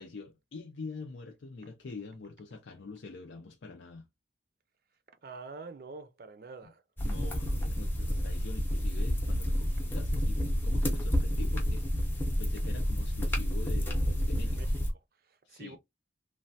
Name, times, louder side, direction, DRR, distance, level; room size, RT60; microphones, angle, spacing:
voice 1, 0.0-4.0 6.6-6.7 7.0-14.8 15.4-15.8, left 4 dB, 90° left, 0.5 m, -45 dB
voice 2, 5.2-6.8 14.4-14.7 15.3-15.8, right 4 dB, 55° right, 0.5 m, -46 dB
sound 1, 7.0-14.9, equal, 10° left, 0.6 m, -29 dB
3.2 x 2.2 x 2.6 m
head